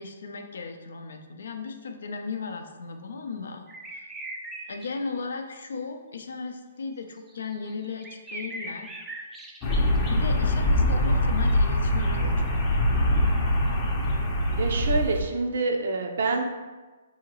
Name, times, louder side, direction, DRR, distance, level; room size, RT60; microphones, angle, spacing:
voice 1, 0.0-3.7 3.9-4.1 4.7-8.9 10.0-13.5, left 4 dB, 75° left, 5 dB, 0.4 m, -36 dB
sound 1, 3.7-5.0 7.3-10.0 10.4-10.5, right 2 dB, 10° right, 0.3 m, -40 dB
sound 2, 9.6-15.2, left 1 dB, 30° left, 0.6 m, -23 dB
voice 2, 14.5-16.5, right 3 dB, 65° right, 3 dB, 0.5 m, -26 dB
3.7 x 2.8 x 2.9 m, 1.3 s
hypercardioid pair, 140°, 0 cm